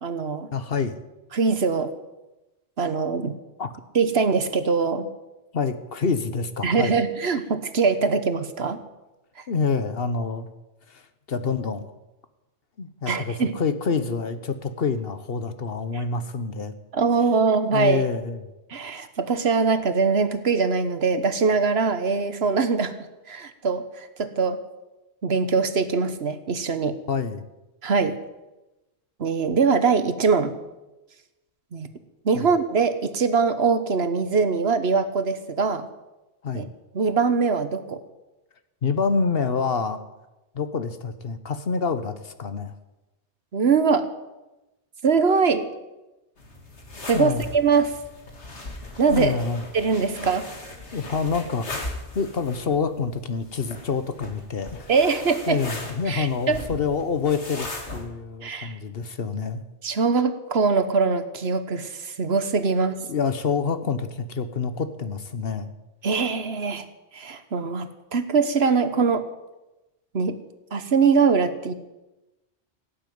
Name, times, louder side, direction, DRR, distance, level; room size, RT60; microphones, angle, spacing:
voice 1, 0.0-0.5 1.3-1.9 2.8-3.3 3.9-5.1 6.6-8.8 13.1-13.6 15.9-16.0 16.9-18.0 18.7-22.9 23.3-24.6 25.2-27.0 27.8-28.2 29.2-30.5 31.7-31.9 32.2-35.9 36.5-36.7 36.9-38.0 43.5-44.1 45.0-45.7 47.1-47.9 49.0-49.3 49.7-50.5 54.9-55.6 56.1-56.7 58.4-58.7 59.8-63.0 66.0-66.8 67.1-69.2 70.1-70.4 70.7-71.7, right 5 dB, 65° right, 11 dB, 1.4 m, -22 dB
voice 2, 0.5-1.0 3.6-3.7 5.5-7.0 9.5-10.5 10.9-11.0 11.3-11.8 12.8-16.7 17.7-18.4 27.1-27.4 32.3-32.5 36.4-36.7 38.8-40.0 40.5-42.7 47.1-47.5 49.1-49.6 50.9-51.9 52.1-54.9 55.5-59.6 63.1-65.7, left 5 dB, 60° left, 11 dB, 1.2 m, -27 dB
sound 1, 46.4-58.0, left 2 dB, 75° left, 2.7 m, -38 dB
16.5 x 8.7 x 9.3 m, 1.0 s
omnidirectional pair, 1.2 m